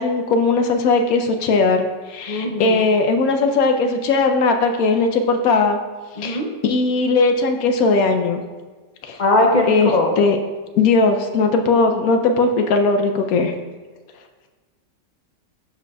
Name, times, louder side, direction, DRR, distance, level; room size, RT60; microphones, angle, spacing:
voice 1, 0.0-5.8 6.2-8.4 9.0-9.2 9.7-10.4 10.8-13.5, left 3 dB, 70° left, 5 dB, 0.9 m, -18 dB
voice 2, 2.3-2.8 6.2-6.5 9.2-10.1, left 2 dB, 45° left, 0 dB, 0.6 m, -19 dB
11.0 x 4.9 x 2.3 m, 1.4 s
omnidirectional pair, 1.8 m